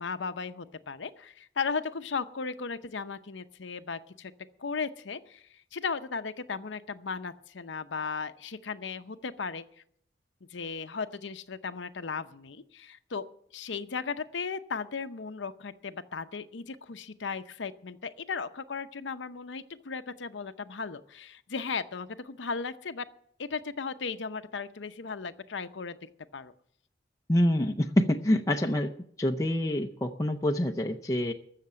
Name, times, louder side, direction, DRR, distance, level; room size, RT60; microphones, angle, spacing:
voice 1, 0.0-4.3 4.6-9.6 10.5-13.3 13.5-23.1 23.4-26.5, left 5 dB, 85° left, 9 dB, 0.7 m, -36 dB
voice 2, 27.3-28.9 29.2-31.3, left 1 dB, 20° left, 3 dB, 0.6 m, -26 dB
14.5 x 6.7 x 9.5 m, 0.67 s
head